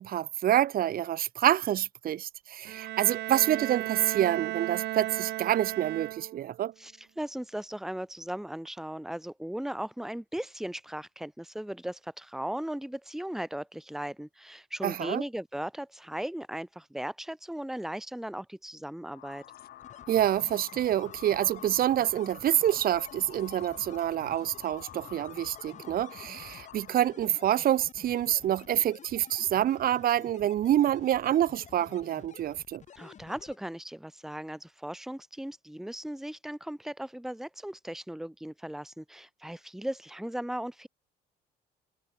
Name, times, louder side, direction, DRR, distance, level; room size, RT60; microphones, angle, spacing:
voice 1, 0.0-6.7 14.8-15.2 20.1-32.8, right 11 dB, 60° right, 2.4 m, -27 dB
Bowed string instrument, 2.7-6.6, right 17 dB, 80° right, 1.4 m, -35 dB
voice 2, 6.8-19.4 32.9-40.9, right 1 dB, ahead, 1.9 m, -37 dB
sound 1, 19.1-27.1, left 12 dB, 65° left, 6.3 m, -48 dB
sound 2, 19.8-33.6, left 8 dB, 45° left, 5.3 m, -51 dB
cardioid pair, 110°, 17 cm